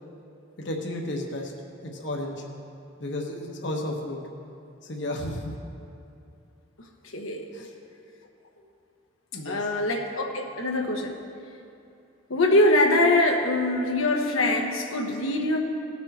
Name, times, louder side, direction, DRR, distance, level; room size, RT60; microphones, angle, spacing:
voice 1, 0.6-1.5 1.8-2.4 3.0-4.2 4.8-5.6 7.5-7.7 8.6-8.7 9.3-9.7, left 1 dB, 60° left, 0 dB, 1.1 m, -33 dB
voice 2, 7.1-7.4 9.4-11.2 12.3-15.6, left 1 dB, 90° left, 1 dB, 1.1 m, -23 dB
18.5 x 6.2 x 4.2 m, 2.6 s
head